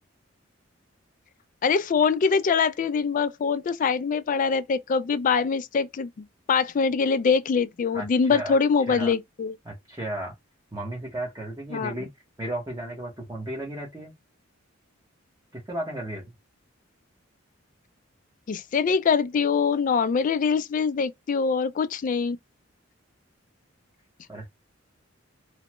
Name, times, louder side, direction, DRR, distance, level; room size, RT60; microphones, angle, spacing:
voice 1, 1.6-6.1 6.5-9.5 11.7-11.9 18.5-22.4, left 5 dB, 40° left, 0.3 m, -23 dB
voice 2, 7.9-8.6 8.9-9.1 9.6-10.3 10.7-12.1 12.4-14.1 15.5-16.2 24.3-24.5, right 1 dB, 15° right, 0.8 m, -34 dB
3.1 x 2.1 x 2.9 m
head